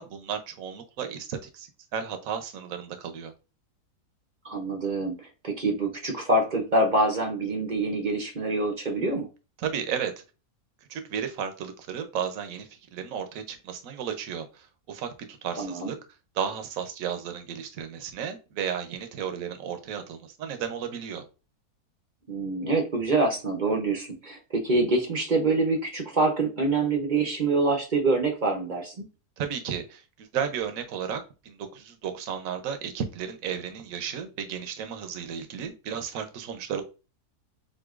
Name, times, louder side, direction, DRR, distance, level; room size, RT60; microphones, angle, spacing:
voice 1, 0.0-3.3 9.6-10.2 10.9-15.9 16.3-21.2 29.4-31.2 31.4-36.8, right 7 dB, 65° right, 7 dB, 1.1 m, -33 dB
voice 2, 4.4-9.3 15.6-15.9 22.3-29.1, right 2 dB, 40° right, 3 dB, 0.7 m, -26 dB
7.6 x 2.7 x 2.4 m, 0.31 s
omnidirectional pair, 1.7 m